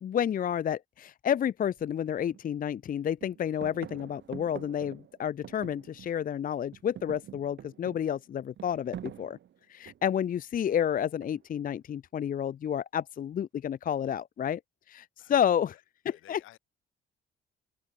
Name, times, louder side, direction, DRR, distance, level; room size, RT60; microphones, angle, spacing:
voice 1, 0.0-9.4 9.7-14.6 14.9-15.7 16.3-16.6, left 9 dB, 45° left, 0.6 m, -30 dB
sound 1, 1.8-1.9 2.3-2.9 3.2-6.3 6.6-10.2 11.2-11.7, right 10 dB, 65° right, 3.6 m, -46 dB
voice 2, 15.2-15.8 16.1-16.6, left 15 dB, 90° left, 7.8 m, -56 dB
open air
cardioid pair, 90°, 20 cm